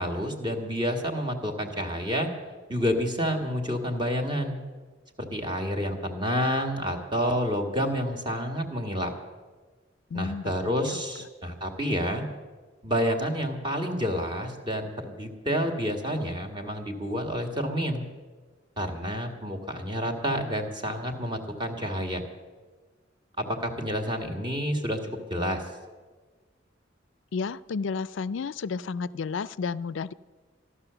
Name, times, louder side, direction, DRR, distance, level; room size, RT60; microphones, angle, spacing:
voice 1, 0.0-2.3 2.7-4.6 5.2-9.1 10.1-12.2 12.8-18.0 18.8-22.2 23.6-25.6, equal, 25° right, 4 dB, 1.7 m, -29 dB
voice 2, 10.1-11.0 27.3-30.1, left 5 dB, 75° left, 18 dB, 0.4 m, -32 dB
14.5 x 11.5 x 6.8 m, 1.4 s
head